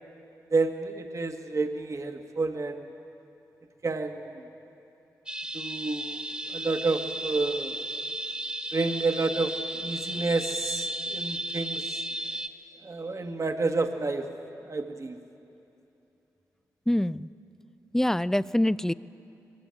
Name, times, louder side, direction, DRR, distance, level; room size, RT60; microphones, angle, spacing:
voice 1, 0.5-2.8 3.8-4.2 5.5-6.2 6.5-7.7 8.7-9.5 9.8-12.0 12.8-14.3 14.6-15.2, right 3 dB, 45° right, 5 dB, 1.8 m, -29 dB
sound 1, 5.3-12.5, right 1 dB, 15° right, 1.7 m, -34 dB
voice 2, 16.9-17.3 17.9-18.9, left 1 dB, 5° left, 17 dB, 0.5 m, -25 dB
22.0 x 20.5 x 8.7 m, 2.9 s
supercardioid pair, 45°, 7 cm